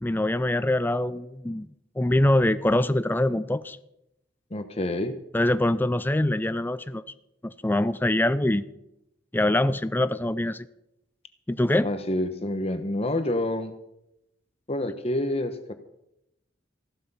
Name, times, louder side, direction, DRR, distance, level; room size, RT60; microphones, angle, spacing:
voice 1, 0.0-1.7 2.0-3.8 5.3-7.0 7.4-8.6 9.3-10.7 11.5-11.9, left 1 dB, 10° left, 13 dB, 0.4 m, -24 dB
voice 2, 4.5-5.1 11.8-13.7 14.7-15.7, left 1 dB, 35° left, 9 dB, 1.1 m, -28 dB
15.0 x 12.0 x 5.6 m, 0.84 s
head